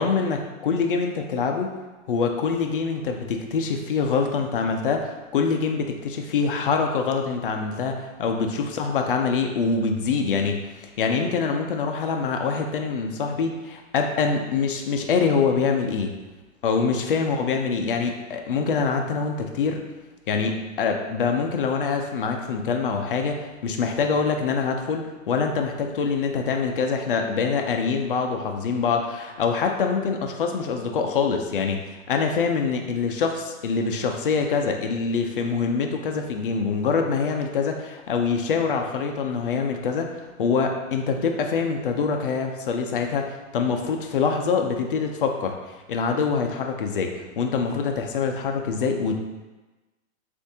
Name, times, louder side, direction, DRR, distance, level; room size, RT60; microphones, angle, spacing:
voice 1, 0.0-1.7 2.1-10.6 11.0-16.2 16.6-19.8 20.3-43.3 43.5-45.5 45.9-49.2, left 5 dB, 40° left, 3 dB, 0.4 m, -25 dB
6.9 x 2.5 x 2.7 m, 1.2 s
hypercardioid pair, 165°, 42 cm